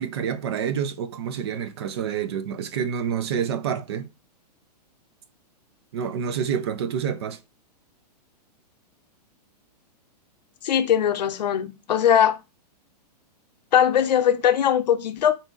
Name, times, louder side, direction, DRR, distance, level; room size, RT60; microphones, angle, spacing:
voice 1, 0.0-4.1 5.9-7.4, right 8 dB, 40° right, 0.4 m, -28 dB
voice 2, 10.6-12.4 13.7-15.3, left 9 dB, 80° left, 0.7 m, -20 dB
3.9 x 2.6 x 3.6 m
hypercardioid pair, 170°, 21 cm